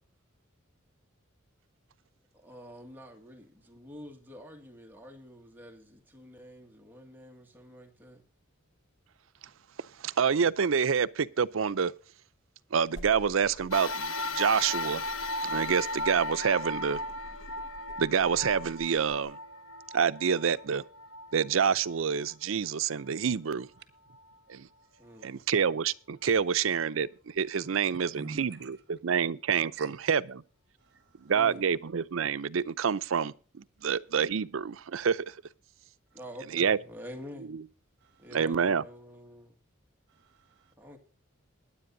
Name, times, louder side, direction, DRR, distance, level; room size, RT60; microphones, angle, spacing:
voice 1, 2.3-8.2 25.0-25.4 31.3-31.7 36.1-37.5 38.2-39.6 40.8-41.0, equal, 10° right, 2.0 m, -48 dB
voice 2, 10.0-11.9 12.7-15.1 15.4-17.0 18.0-19.4 19.9-20.8 21.3-23.7 24.5-24.7 25.2-30.4 31.2-35.3 36.5-36.8 38.3-38.8, right 6 dB, 75° right, 0.5 m, -27 dB
sound 1, 12.9-19.3, equal, 65° left, 1.5 m, -50 dB
sound 2, 13.7-22.3 22.9-23.0 24.1-24.2, left 1 dB, 80° left, 1.1 m, -36 dB
voice 3, 28.1-28.7 29.8-29.9 30.8-31.3 38.0-38.3 40.1-40.7, right 3 dB, 55° right, 1.5 m, -46 dB
21.5 x 10.0 x 2.7 m
head